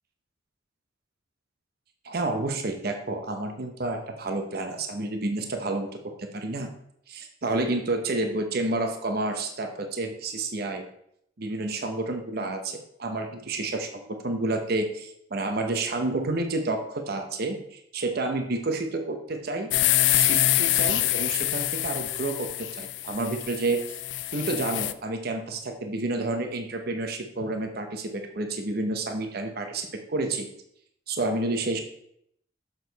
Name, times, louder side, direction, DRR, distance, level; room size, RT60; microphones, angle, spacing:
voice 1, 2.0-6.7 7.1-10.8 11.4-19.7 20.1-24.0 24.3-30.5 31.1-31.8, right 2 dB, 55° right, 5 dB, 0.8 m, -30 dB
sound 1, 19.7-24.9, left 14 dB, 70° left, 0.4 m, -25 dB
6.8 x 6.4 x 4.0 m, 0.71 s
head